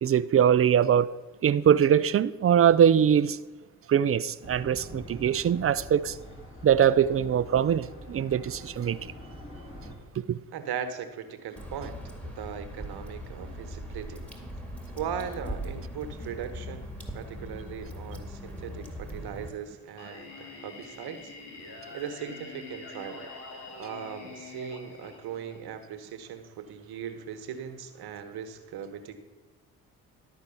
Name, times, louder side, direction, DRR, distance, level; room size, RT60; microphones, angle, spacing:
voice 1, 0.0-1.1 1.4-3.4 3.9-6.1 6.6-9.0 10.3-10.4, right 9 dB, 35° right, 0.5 m, -22 dB
sound 1, 4.4-10.0, equal, 30° left, 3.2 m, -45 dB
voice 2, 10.5-12.0 12.2-14.2 15.0-21.3 21.9-23.3 23.8-29.1, right 8 dB, 70° right, 1.2 m, -38 dB
Water / Drip, 11.6-19.5, equal, 5° left, 2.1 m, -40 dB
Singing, 20.0-25.9, left 4 dB, 80° left, 1.6 m, -45 dB
12.0 x 4.5 x 7.0 m
supercardioid pair, 50°, 40 cm